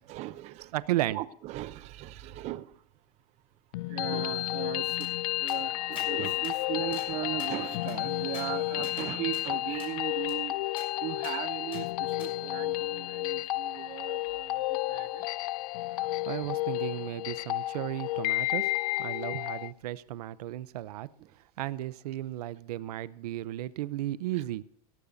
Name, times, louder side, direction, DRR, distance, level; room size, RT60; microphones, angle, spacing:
voice 1, 0.0-0.7 1.1-3.0 3.8-15.3 21.2-21.4 24.3-24.4, right 15 dB, 35° right, 0.6 m, -38 dB
voice 2, 0.7-1.2 15.9-18.7 19.0-21.1 21.4-24.6, right 15 dB, 85° right, 0.7 m, -34 dB
sound 1, 3.7-19.7, left 18 dB, 70° left, 0.5 m, -32 dB
sound 2, 5.0-5.1 5.5-5.6 6.0-6.1 6.4-6.6 6.9-7.1 7.4-9.1 9.3-9.4 9.8-9.9 10.3-10.4 10.8-10.9 11.2-11.4 11.7-11.8 12.2-12.3, left 3 dB, 30° left, 6.3 m, -48 dB
17.0 x 15.0 x 2.7 m
supercardioid pair, 155°, 20 cm